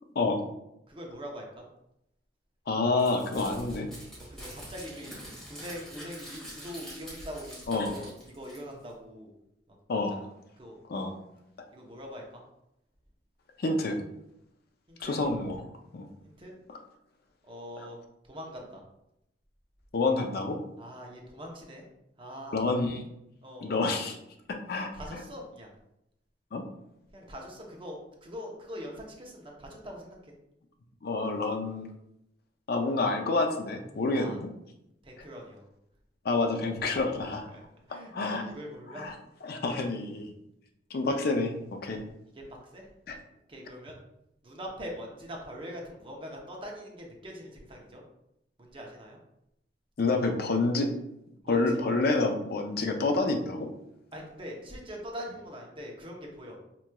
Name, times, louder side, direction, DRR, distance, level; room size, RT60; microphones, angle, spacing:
voice 1, 0.9-1.6 4.2-5.2 5.5-9.3 9.9-10.1 10.6-10.8 11.7-12.4 14.9-15.2 16.2-16.5 17.5-18.0 18.3-18.8 20.8-21.8 22.2-22.6 23.4-23.7 24.9-25.7 27.1-30.3 34.1-34.4 35.0-35.6 37.5-37.6 37.9-39.1 42.3-42.4 42.7-42.8 43.5-43.9 44.4-48.0 48.6-49.2 51.4-51.8 54.1-56.6, equal, 30° right, -1 dB, 0.7 m, -42 dB
voice 2, 2.7-3.9 7.7-7.9 9.9-10.1 10.9-11.1 13.6-14.0 15.0-15.6 15.9-16.1 16.7-16.8 17.8-17.9 19.9-20.6 22.5-23.0 23.6-24.2 24.7-24.9 26.5-26.6 31.0-31.9 32.7-34.5 36.2-37.5 38.1-38.4 38.9-39.1 39.4-40.2 40.9-42.0 43.1-43.2 50.0-50.9 51.5-53.7, left 3 dB, 60° left, 4 dB, 0.4 m, -28 dB
Crumpling crinkling, 3.0-8.9, equal, 5° left, 1.4 m, -45 dB
4.6 x 2.9 x 2.2 m, 0.83 s
head